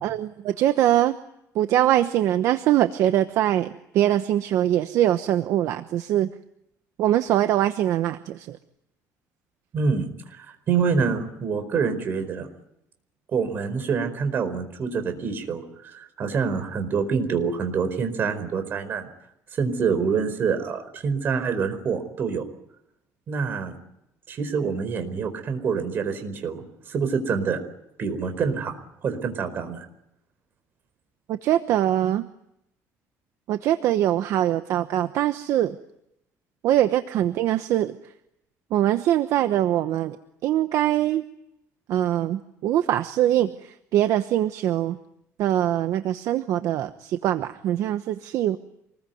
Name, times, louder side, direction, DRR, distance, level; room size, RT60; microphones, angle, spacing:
voice 1, 0.0-1.2 1.5-6.3 7.0-8.6 31.3-32.3 33.5-35.8 36.6-38.0 38.7-40.2 40.4-41.2 41.9-45.0 45.4-48.6, right 12 dB, 55° right, 10 dB, 1.0 m, -23 dB
voice 2, 9.7-12.5 13.3-19.1 19.5-22.4 23.3-23.7 24.3-27.6 28.0-28.7 29.0-29.9, right 5 dB, 35° right, 8 dB, 4.6 m, -26 dB
27.5 x 21.0 x 9.4 m, 0.82 s
cardioid pair, 175°, 6 cm